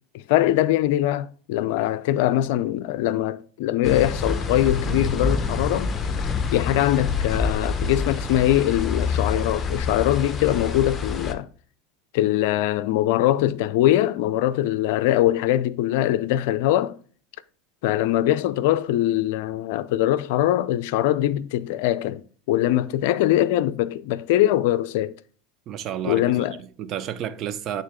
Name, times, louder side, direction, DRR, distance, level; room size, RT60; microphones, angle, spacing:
voice 1, 0.1-5.9 6.5-11.5 12.1-17.0 17.8-22.2 22.5-25.1 26.0-26.6, left 13 dB, 65° left, 0.5 m, -22 dB
sound 1, 3.8-11.3, left 5 dB, 25° left, 0.9 m, -26 dB
voice 2, 25.7-27.8, right 10 dB, 45° right, 0.7 m, -31 dB
8.6 x 3.8 x 3.6 m
hypercardioid pair, 85°, 0 cm